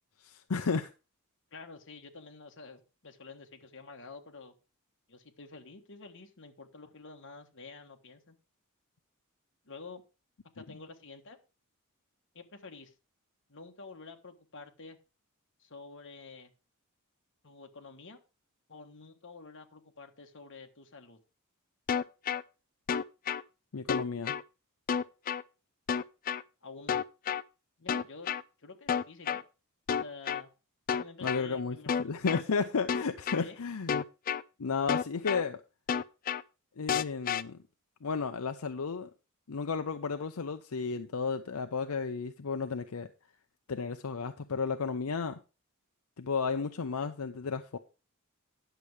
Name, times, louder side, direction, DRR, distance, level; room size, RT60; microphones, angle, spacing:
voice 1, 0.2-0.9 10.6-10.7 23.7-24.3 31.2-34.0 34.6-35.6 36.8-37.6 38.0-39.1 39.5-43.1 43.7-45.4 46.2-47.8, left 5 dB, 80° left, 0.6 m, -33 dB
voice 2, 1.5-4.5 5.1-8.4 9.6-10.0 10.5-11.4 12.3-12.9 13.5-15.0 15.6-16.5 17.4-18.2 18.7-21.2 26.6-27.0 27.8-28.3 28.6-29.4 30.0-30.5 30.9-32.1 33.4-33.6, left 4 dB, 60° left, 1.4 m, -49 dB
sound 1, 21.9-22.4 22.9-23.4 23.9-24.4 24.9-25.4 25.9-26.4 26.9-27.4 27.9-28.4 28.9-29.4 29.9-30.4 30.9-31.4 31.9-32.4 32.9-33.4 33.9-34.4 34.9-35.4 35.9-36.4 36.9-37.4, left 7 dB, 40° left, 0.4 m, -30 dB
10.5 x 6.8 x 4.7 m
head